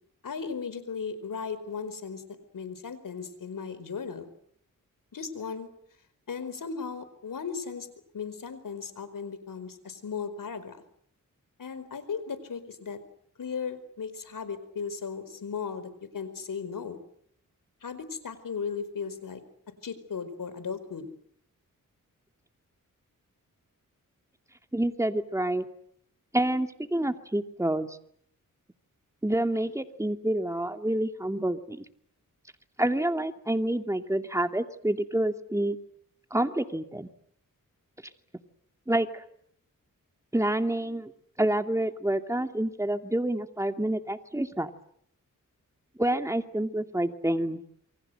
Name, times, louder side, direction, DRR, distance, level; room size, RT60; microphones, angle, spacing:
voice 1, 0.2-2.2 2.5-4.3 5.1-5.7 6.3-7.9 8.1-10.8 11.6-13.0 13.4-17.0 17.8-19.4 19.8-21.1, left 6 dB, 75° left, 12 dB, 4.8 m, -36 dB
voice 2, 24.7-25.6 26.3-28.0 29.2-31.8 32.8-35.8 36.3-37.1 38.9-39.2 40.3-41.1 41.4-44.7 46.0-47.7, right 1 dB, 10° right, 6 dB, 2.6 m, -28 dB
28.5 x 24.0 x 8.0 m, 0.69 s
cardioid pair, 65°, 33 cm